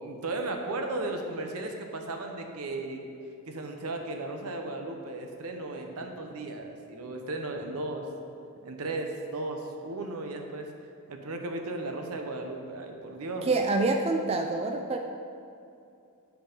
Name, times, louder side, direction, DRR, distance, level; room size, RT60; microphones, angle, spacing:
voice 1, 0.0-3.0 3.5-8.1 8.6-10.7 11.1-13.5, right 2 dB, 90° right, 4 dB, 0.8 m, -35 dB
voice 2, 13.4-15.0, right 3 dB, 25° right, 3 dB, 0.3 m, -26 dB
7.8 x 4.6 x 5.3 m, 2.6 s
head